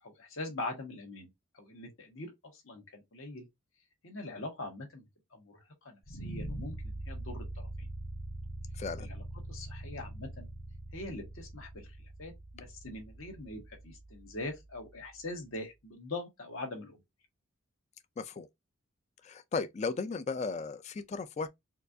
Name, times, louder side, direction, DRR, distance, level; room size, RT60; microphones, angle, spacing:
voice 1, 0.0-1.3 1.5-3.5 4.0-5.0 5.3-7.4 7.8-7.9 9.0-9.2 9.5-10.5 10.9-17.0, left 2 dB, 75° left, 1.4 m, -43 dB
sound 1, 6.0-15.1, right 1 dB, 50° left, 1.2 m, -43 dB
voice 2, 8.7-9.1 18.2-18.5 19.2-21.5, left 4 dB, 30° left, 0.3 m, -35 dB
4.4 x 2.4 x 2.6 m
head